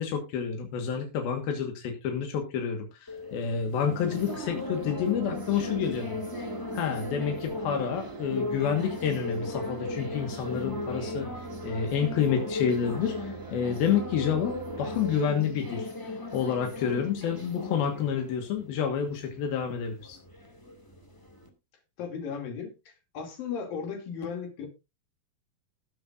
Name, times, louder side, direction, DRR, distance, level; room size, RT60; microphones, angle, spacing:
voice 1, 0.0-6.2 6.7-20.2, left 7 dB, 90° left, 4 dB, 3.4 m, -29 dB
sound 1, 3.1-21.5, left 2 dB, 10° left, 1.2 m, -37 dB
sound 2, 3.8-15.2, right 5 dB, 60° right, 1.0 m, -42 dB
voice 2, 22.0-24.7, left 6 dB, 70° left, 3 dB, 4.3 m, -36 dB
19.5 x 7.8 x 2.5 m, 0.26 s
omnidirectional pair, 4.2 m